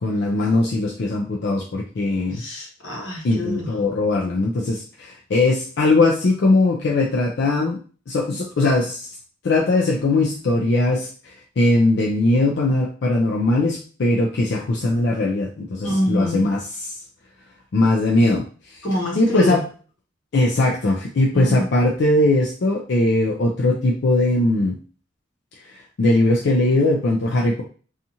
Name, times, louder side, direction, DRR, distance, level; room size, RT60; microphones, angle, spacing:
voice 1, 0.0-2.4 3.2-7.8 8.1-9.1 9.4-17.0 17.7-18.8 19.2-19.6 20.3-24.8 25.7-27.6, left 2 dB, 60° left, -1 dB, 0.4 m, -20 dB
voice 2, 2.3-3.7 15.8-16.5 18.8-19.6 21.3-21.7, equal, 85° left, -1 dB, 1.0 m, -25 dB
2.8 x 2.4 x 2.6 m, 0.39 s
head